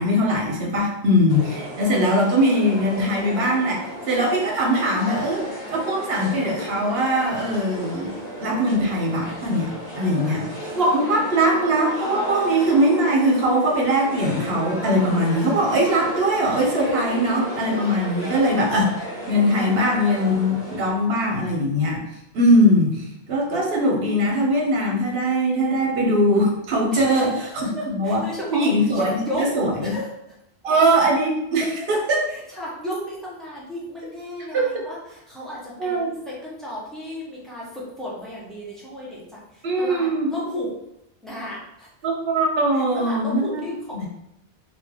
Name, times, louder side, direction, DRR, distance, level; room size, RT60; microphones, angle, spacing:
voice 1, 0.0-8.1 8.4-10.4 10.7-18.9 19.3-22.0 22.3-23.0 23.3-28.2 28.5-29.9 30.6-32.3 34.5-34.9 35.8-36.1 39.6-40.3 42.0-43.7 43.9-44.1, equal, 70° right, -1 dB, 1.0 m, -21 dB
sound 1, 1.3-20.9, equal, 70° left, 1.2 m, -33 dB
voice 2, 10.0-10.9 26.9-29.4 29.8-30.4 32.3-40.7 41.2-41.9 42.7-44.1, equal, ahead, -7 dB, 0.9 m, -34 dB
2.7 x 2.6 x 3.4 m, 0.83 s
omnidirectional pair, 1.0 m